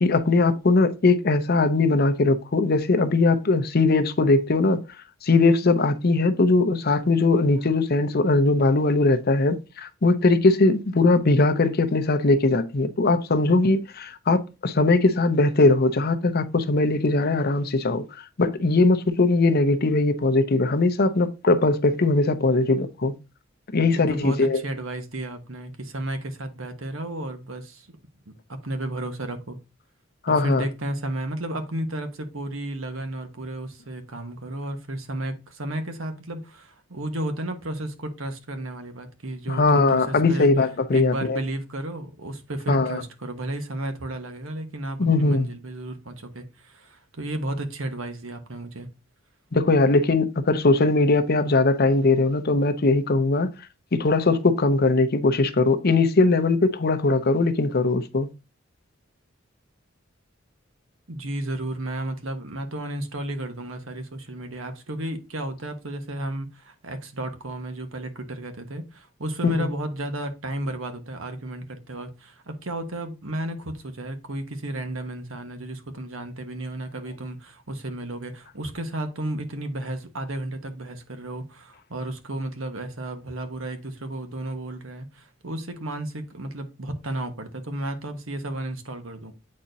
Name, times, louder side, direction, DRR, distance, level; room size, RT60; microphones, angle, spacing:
voice 1, 0.0-4.8 5.2-23.1 23.7-24.6 30.2-30.6 39.5-41.4 42.7-43.0 45.0-45.5 49.5-53.5 53.9-58.3 69.4-69.7, left 3 dB, 50° left, 0.7 m, -20 dB
voice 2, 23.9-27.9 28.3-29.6 30.3-40.5 40.9-48.9 61.1-89.3, right 1 dB, 90° right, 1.3 m, -33 dB
8.4 x 4.3 x 2.6 m
head